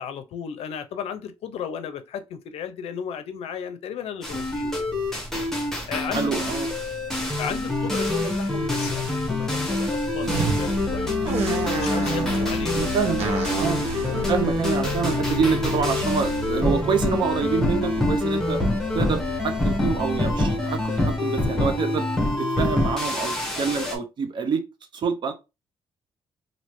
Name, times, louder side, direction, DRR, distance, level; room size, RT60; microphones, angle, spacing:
voice 1, 0.0-4.9 5.8-6.5 7.4-11.3 11.8-12.9 13.5-14.3, left 8 dB, 75° left, 0.5 m, -35 dB
sound 1, 4.2-23.9, left 2 dB, 5° left, 1.0 m, -25 dB
sound 2, 4.2-21.1, right 1 dB, 65° right, 1.1 m, -39 dB
voice 2, 6.1-6.7 12.7-13.3 13.5-13.8 14.3-18.6 18.9-22.1 22.4-24.6 24.9-25.3, right 6 dB, 50° right, 0.6 m, -26 dB
sound 3, 10.2-10.6 11.2-12.5 13.2-15.6, right 5 dB, 90° right, 0.8 m, -30 dB
3.1 x 2.6 x 3.0 m
cardioid pair, 135°, 10 cm